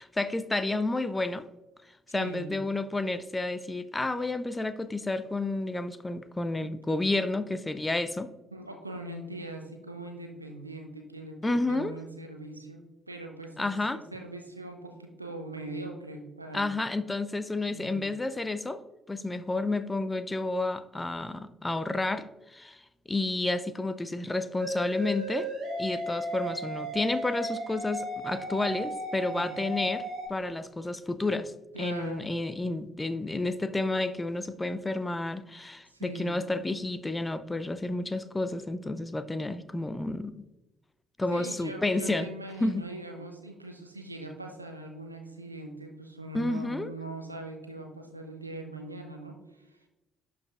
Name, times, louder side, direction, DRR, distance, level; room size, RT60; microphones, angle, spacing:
voice 1, 0.0-1.4 2.1-8.3 11.4-11.9 13.6-14.0 16.5-18.8 19.1-22.8 23.1-25.5 25.8-30.0 30.3-31.5 31.8-40.4 41.2-42.3 42.6-42.8 46.3-46.9, left 2 dB, 20° left, 12 dB, 0.5 m, -30 dB
voice 2, 2.1-2.6 6.6-6.7 8.5-16.6 17.6-18.1 29.3-29.8 31.7-32.3 35.9-36.4 41.3-49.9, right 2 dB, 90° right, 4 dB, 0.6 m, -41 dB
sound 1, 24.6-30.3, equal, 50° right, 1.7 m, -35 dB
11.0 x 4.9 x 2.4 m, 1.0 s
figure-of-eight pair, 45°, 0 cm